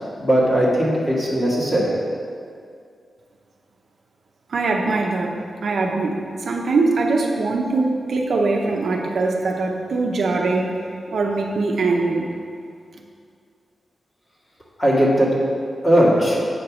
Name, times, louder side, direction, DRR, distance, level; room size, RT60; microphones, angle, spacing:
voice 1, 0.2-1.9 14.8-15.4 15.8-16.4, equal, 25° left, -6 dB, 1.9 m, -18 dB
voice 2, 4.5-5.3 5.6-6.2 6.5-10.7 11.1-12.3, right 3 dB, 65° right, 1 dB, 0.7 m, -21 dB
7.9 x 4.6 x 6.3 m, 2.3 s
wide cardioid pair, 170°, 0 cm